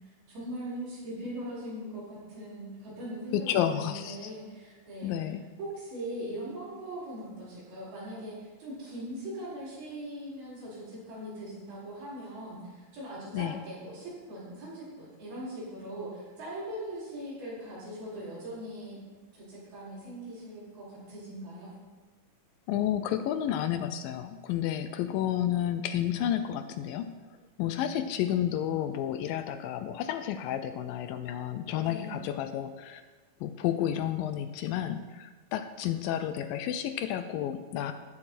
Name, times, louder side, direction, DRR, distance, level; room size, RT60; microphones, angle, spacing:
voice 1, 0.3-5.1 5.6-19.0 19.3-21.7 27.8-28.0 31.8-32.2, right 1 dB, 80° right, -8 dB, 6.9 m, -40 dB
voice 2, 3.3-4.3 5.0-5.5 13.3-13.6 22.7-27.1 27.6-33.0 33.4-37.9, left 10 dB, 80° left, 10 dB, 2.2 m, -31 dB
14.5 x 11.0 x 4.3 m, 1.3 s
omnidirectional pair, 4.3 m